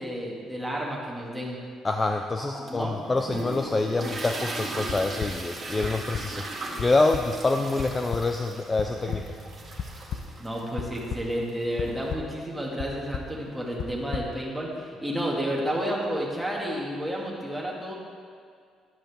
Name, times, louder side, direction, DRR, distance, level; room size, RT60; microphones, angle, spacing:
voice 1, 0.0-1.6 2.4-2.9 10.4-17.9, equal, 5° right, -3 dB, 2.1 m, -31 dB
voice 2, 1.8-6.5 6.8-9.2, left 3 dB, 20° left, 5 dB, 0.5 m, -26 dB
sound 1, 2.7-12.1, right 2 dB, 25° right, 1.9 m, -38 dB
sound 2, 4.9-5.3 5.8-6.2 6.8-6.9 7.1-7.2 7.8-7.9 8.1-8.2 8.8-9.2 9.8-10.2 10.8-11.3 11.8-12.2 12.8-12.9 13.1-13.3 13.8-14.2, left 8 dB, 55° left, 0.8 m, -32 dB
13.5 x 11.5 x 3.6 m, 2.2 s
cardioid pair, 135°, 0 cm